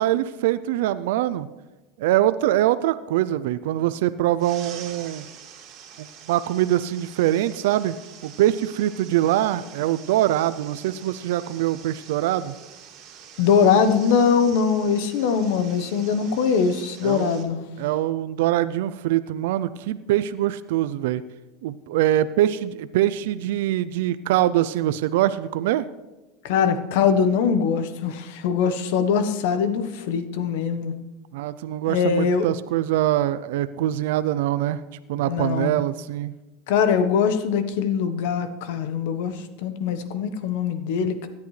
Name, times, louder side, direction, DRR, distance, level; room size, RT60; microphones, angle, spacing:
voice 1, 0.0-1.5 2.0-5.3 6.0-7.9 8.2-12.5 17.0-17.4 17.8-21.2 21.6-25.9 31.3-34.8 35.1-36.3, right 13 dB, 75° right, 14 dB, 0.4 m, -23 dB
sound 1, 4.4-17.4, right 8 dB, 55° right, 2.2 m, -45 dB
voice 2, 13.4-17.6 26.4-30.9 31.9-32.4 35.2-35.8 36.7-41.3, left 6 dB, 75° left, 10 dB, 1.1 m, -22 dB
17.0 x 10.5 x 3.3 m, 1.1 s
supercardioid pair, 115°, 0 cm